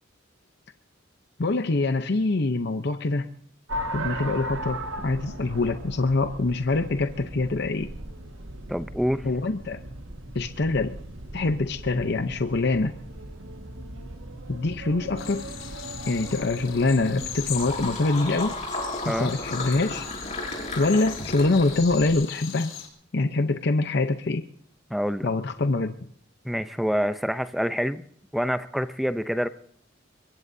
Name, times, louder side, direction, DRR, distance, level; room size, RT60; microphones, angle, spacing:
voice 1, 1.4-3.3 3.9-7.9 9.2-9.8 10.3-11.0 11.3-12.9 14.5-15.5 16.1-18.6 19.0-20.1 20.8-22.7 23.1-24.4 25.2-25.9, left 3 dB, 55° left, 8 dB, 0.7 m, -24 dB
sound 1, 3.7-17.9, right 1 dB, 80° right, 1.7 m, -38 dB
voice 2, 8.7-9.3 19.1-19.4 24.9-25.3 26.4-28.0 28.3-29.5, equal, ahead, 11 dB, 0.5 m, -26 dB
sound 2, 15.2-22.9, left 8 dB, 80° left, 3.9 m, -39 dB
sound 3, 16.8-22.1, left 2 dB, 35° left, 6.3 m, -34 dB
23.0 x 21.5 x 2.7 m, 0.62 s
head